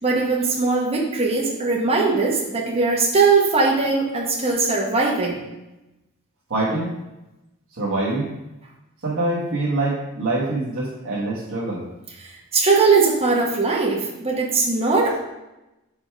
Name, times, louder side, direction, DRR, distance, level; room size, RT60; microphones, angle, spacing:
voice 1, 0.0-5.4 12.2-15.2, right 4 dB, 25° right, -3 dB, 1.1 m, -20 dB
voice 2, 6.5-6.9 7.7-8.3 9.0-11.9, right 2 dB, 60° right, -8 dB, 1.3 m, -24 dB
5.2 x 4.7 x 4.6 m, 0.97 s
head